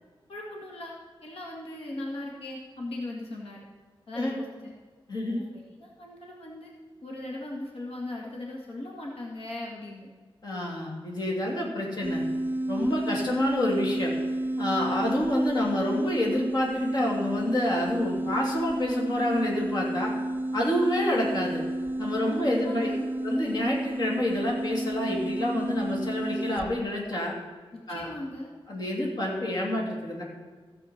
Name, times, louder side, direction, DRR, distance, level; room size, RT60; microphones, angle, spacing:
voice 1, 0.3-1.0 1.2-3.6 4.1-4.7 5.2-6.7 7.0-10.1 22.2-23.1 27.7-28.5, left 1 dB, 85° left, -2 dB, 1.9 m, -38 dB
voice 2, 5.1-5.5 10.4-12.2 12.7-14.1 14.6-20.1 20.5-21.6 22.0-22.9 23.2-27.3 27.9-28.1 28.7-30.2, left 1 dB, 45° left, -2 dB, 2.7 m, -28 dB
sound 1, 12.0-26.8, right 1 dB, 20° right, 0.6 m, -31 dB
15.0 x 7.6 x 4.4 m, 1.5 s
wide cardioid pair, 125°, 9 cm